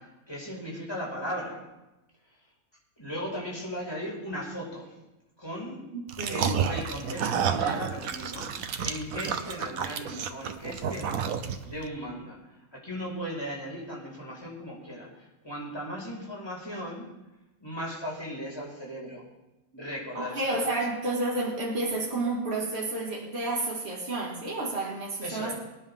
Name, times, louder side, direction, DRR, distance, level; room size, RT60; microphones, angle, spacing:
voice 1, 0.0-1.6 3.0-4.9 5.4-5.8 6.3-11.2 11.6-12.4 12.7-17.1 17.6-19.2 19.7-20.6 25.2-25.5, equal, 20° left, -4 dB, 5.2 m, -37 dB
voice 2, 5.9-6.6 20.1-25.5, right 2 dB, 50° right, -3 dB, 2.6 m, -30 dB
sound 1, 6.1-11.8, right 7 dB, 85° right, 1.3 m, -30 dB
24.5 x 9.9 x 3.7 m, 1.0 s
omnidirectional pair, 1.4 m